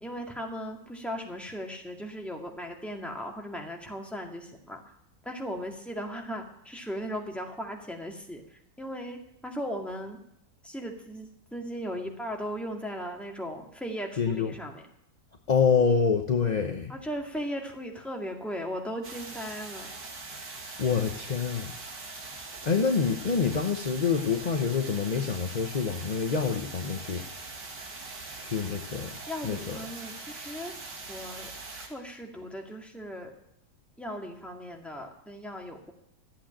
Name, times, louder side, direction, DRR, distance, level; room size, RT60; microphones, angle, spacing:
voice 1, 0.0-4.8 5.2-10.2 10.6-14.9 16.9-19.9 29.3-33.4 34.0-35.9, equal, ahead, 0 dB, 1.9 m, -37 dB
voice 2, 14.2-14.5 15.5-16.9 20.8-21.7 22.6-27.3 28.4-29.1 29.4-29.8, left 5 dB, 35° left, 5 dB, 0.7 m, -26 dB
sound 1, 19.0-31.9, right 3 dB, 85° right, 2.7 m, -42 dB
14.0 x 8.5 x 8.8 m, 0.78 s
omnidirectional pair, 1.8 m